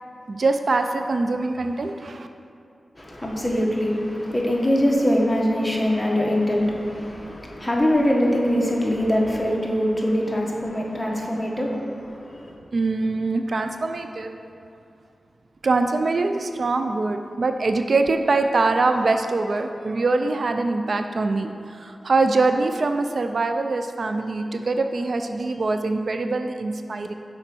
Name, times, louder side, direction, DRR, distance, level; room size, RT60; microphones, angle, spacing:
voice 1, 0.3-2.3 12.7-14.3 15.6-27.1, right 3 dB, 65° right, 7 dB, 0.4 m, -23 dB
voice 2, 3.0-12.5, equal, 15° left, -2 dB, 1.5 m, -23 dB
6.6 x 5.2 x 6.1 m, 2.6 s
cardioid pair, 60°, 0 cm